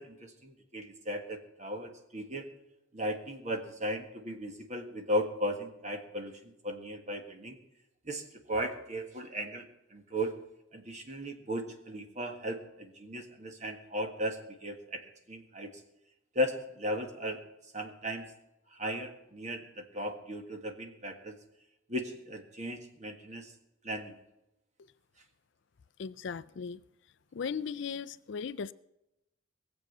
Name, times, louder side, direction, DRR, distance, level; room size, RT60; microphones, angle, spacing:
voice 1, 0.0-2.5 2.9-7.6 8.1-10.4 10.7-15.7 16.3-17.4 17.7-18.3 18.7-21.4 21.9-23.5 23.8-24.2, equal, 35° right, 1.7 m, -36 dB
voice 2, 26.0-26.8 27.3-28.7, left 6 dB, 60° left, 0.4 m, -37 dB
19.0 x 7.9 x 6.7 m
head